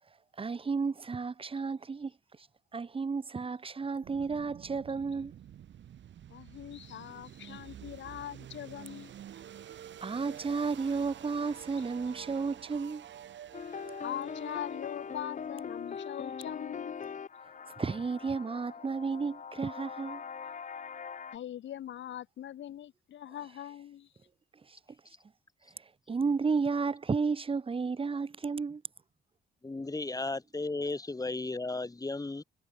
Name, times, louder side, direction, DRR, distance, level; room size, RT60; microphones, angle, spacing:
voice 1, 0.4-2.1 2.7-5.3 10.0-13.0 17.8-20.2 24.7-24.8 25.8-28.8, right 5 dB, 25° right, 1.2 m, -32 dB
sound 1, 4.0-16.8, right 10 dB, 65° right, 5.4 m, -49 dB
voice 2, 6.3-9.1 14.0-17.0 21.3-24.1, left 11 dB, 70° left, 2.0 m, -42 dB
sound 2, 13.5-21.4, left 6 dB, 40° left, 1.4 m, -42 dB
voice 3, 29.6-32.4, left 3 dB, 20° left, 2.4 m, -35 dB
cardioid pair, 90°, 20 cm